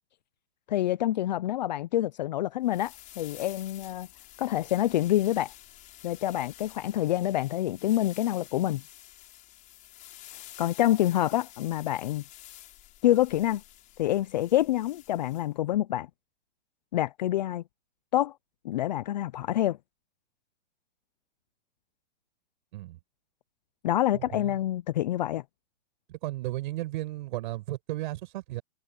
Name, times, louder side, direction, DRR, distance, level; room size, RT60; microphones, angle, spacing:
voice 1, 0.7-4.1 4.4-5.5 6.0-8.8 10.6-12.2 13.0-13.6 14.0-16.1 16.9-17.6 18.1-18.3 18.6-19.8 23.8-25.4, left 13 dB, 40° left, 0.6 m, -27 dB
sound 1, 2.6-15.5, left 14 dB, 20° left, 5.8 m, -50 dB
voice 2, 24.1-24.6 26.1-28.6, right 17 dB, 45° right, 7.2 m, -34 dB
hypercardioid pair, 160°, 35 cm